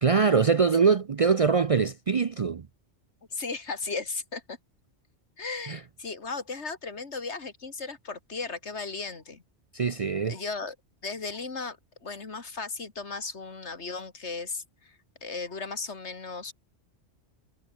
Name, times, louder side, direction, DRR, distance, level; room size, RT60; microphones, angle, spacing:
voice 1, 0.0-2.7 5.7-5.8 9.7-10.4, right 5 dB, 45° right, 0.5 m, -23 dB
voice 2, 3.3-4.6 5.4-9.4 10.2-10.8 11.0-16.5, left 4 dB, 75° left, 2.6 m, -36 dB
omnidirectional pair, 1.2 m